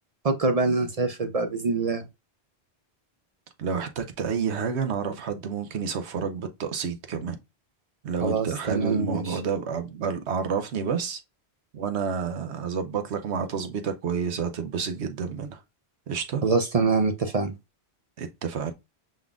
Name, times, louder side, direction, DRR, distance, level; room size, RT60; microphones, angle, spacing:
voice 1, 0.2-2.0 8.2-9.4 16.4-17.5, right 4 dB, 45° right, 0.6 m, -25 dB
voice 2, 3.6-7.4 8.0-11.2 11.7-15.6 16.1-16.4 18.2-18.7, right 6 dB, 90° right, 1.1 m, -29 dB
5.4 x 3.7 x 2.4 m
omnidirectional pair, 1.1 m